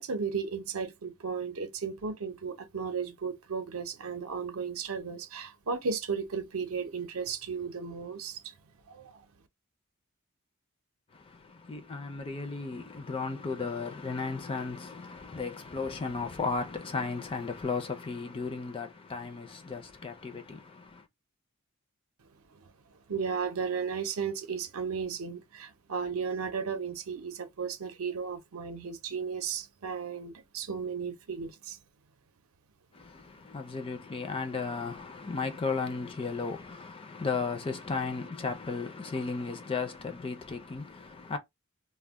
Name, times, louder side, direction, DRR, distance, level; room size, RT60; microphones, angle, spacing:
voice 1, 0.0-8.5 8.9-9.3 23.1-31.8, right 6 dB, 70° right, 0.6 m, -35 dB
voice 2, 11.1-21.1 32.9-41.4, left 4 dB, 25° left, 0.4 m, -35 dB
2.2 x 2.1 x 3.5 m
head